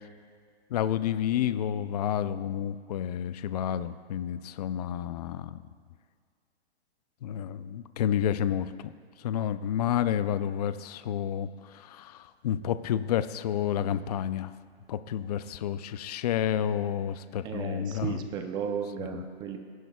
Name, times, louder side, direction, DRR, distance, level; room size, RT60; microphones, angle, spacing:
voice 1, 0.7-5.6 7.2-8.9 9.2-14.5 14.9-18.2 19.0-19.2, left 10 dB, 40° left, 13 dB, 0.5 m, -30 dB
voice 2, 17.4-19.6, right 7 dB, 15° right, 6 dB, 0.6 m, -34 dB
28.0 x 11.0 x 2.3 m, 2.1 s
hypercardioid pair, 145°, 32 cm